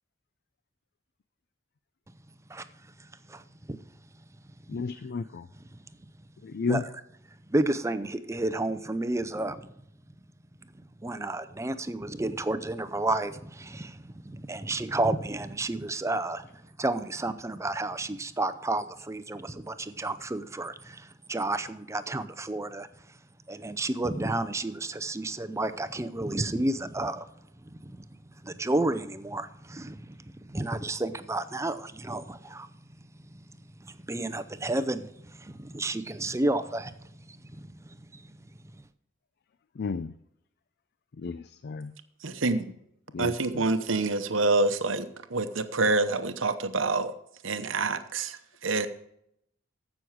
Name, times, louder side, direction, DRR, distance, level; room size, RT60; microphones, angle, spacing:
voice 1, 3.0-3.8 4.7-4.8 5.5-5.8 6.7-6.9 7.5-9.7 10.7-23.2 23.5-27.3 27.6-28.1 28.4-32.7 33.3-33.4 33.8-38.4 38.6-38.8, right 2 dB, 15° right, 12 dB, 0.6 m, -32 dB
voice 2, 4.7-5.5 6.4-6.8 39.8-40.1 41.2-41.9 43.1-43.3, left 4 dB, 55° left, 13 dB, 0.4 m, -32 dB
voice 3, 42.2-42.7 43.2-47.1 47.4-48.9, right 3 dB, 70° right, 9 dB, 0.9 m, -27 dB
15.0 x 6.3 x 4.8 m, 0.75 s
head